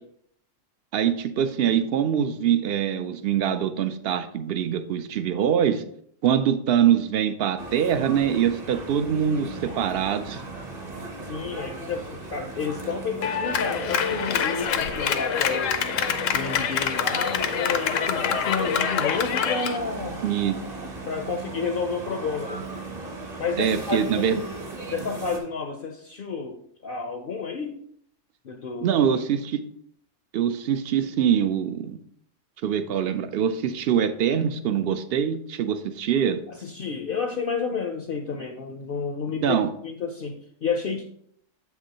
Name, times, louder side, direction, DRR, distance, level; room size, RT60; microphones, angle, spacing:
voice 1, 0.9-5.8 6.2-10.4 20.2-20.6 23.6-24.4 28.8-29.6 30.3-32.0 32.6-36.4 39.4-39.7, right 8 dB, 65° right, 11 dB, 0.6 m, -24 dB
sound 1, 7.6-25.4, right 2 dB, 35° right, 0.9 m, -37 dB
voice 2, 11.2-15.8 16.3-20.2 21.1-22.6 23.4-24.3 24.9-27.8 28.4-28.9 36.5-41.0, left 5 dB, 55° left, 5 dB, 0.7 m, -30 dB
Clapping, 13.2-19.8, left 8 dB, 80° left, 1.0 m, -26 dB
7.6 x 6.0 x 2.8 m, 0.68 s
omnidirectional pair, 1.3 m